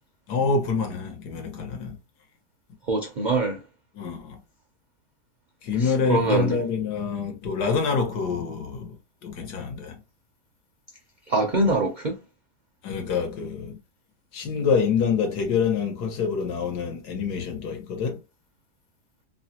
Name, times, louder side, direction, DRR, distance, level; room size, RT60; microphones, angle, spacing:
voice 1, 0.3-2.0 3.9-4.4 5.6-10.0 12.8-13.8 14.3-18.2, left 5 dB, 85° left, 1.5 m, -26 dB
voice 2, 2.9-3.6 6.1-6.6 11.3-12.2, right 2 dB, 85° right, 0.4 m, -23 dB
3.2 x 2.1 x 2.7 m
omnidirectional pair, 1.7 m